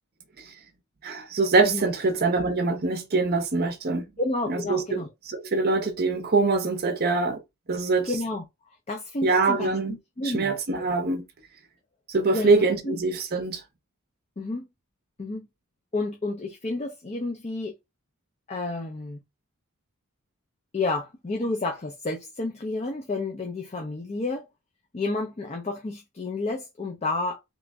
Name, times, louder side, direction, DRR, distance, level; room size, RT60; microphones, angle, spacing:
voice 1, 1.0-4.1 4.5-7.4 7.7-8.1 9.2-10.0 10.2-11.2 12.1-13.6, right 3 dB, 45° right, 0.7 m, -24 dB
voice 2, 4.2-5.1 8.0-10.8 12.3-13.0 14.4-14.7 15.2-15.5 15.9-17.7 18.5-19.2 20.7-24.5 24.9-27.4, left 2 dB, 30° left, 0.5 m, -31 dB
3.0 x 2.5 x 3.4 m
head